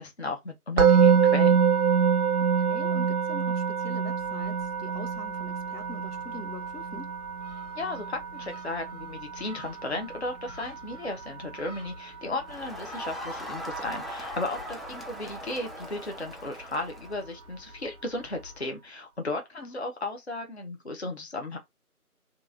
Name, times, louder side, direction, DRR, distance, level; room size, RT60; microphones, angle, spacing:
voice 1, 0.0-1.6 7.8-21.6, left 2 dB, 45° left, 0.6 m, -35 dB
Musical instrument, 0.8-11.9, right 7 dB, 75° right, 0.5 m, -26 dB
voice 2, 2.6-7.2 14.9-15.1 19.6-19.8, left 2 dB, 85° left, 1.0 m, -43 dB
Gull seagull, 4.1-18.7, left 2 dB, 25° left, 1.3 m, -51 dB
Crowd, 12.5-17.3, right 1 dB, ahead, 0.4 m, -39 dB
2.8 x 2.4 x 3.8 m
figure-of-eight pair, 165°, 45 cm